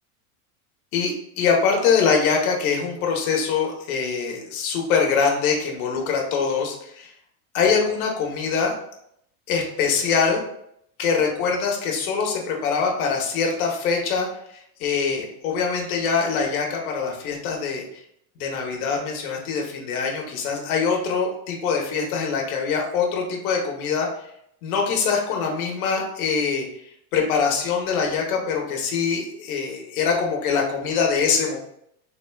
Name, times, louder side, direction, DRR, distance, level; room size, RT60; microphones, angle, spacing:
voice 1, 0.9-7.1 7.5-8.7 9.5-10.4 11.0-17.8 18.4-24.1 24.6-26.7 27.1-31.6, left 5 dB, 70° left, 0 dB, 1.0 m, -23 dB
3.7 x 3.3 x 2.2 m, 0.73 s
supercardioid pair, 175°, 44 cm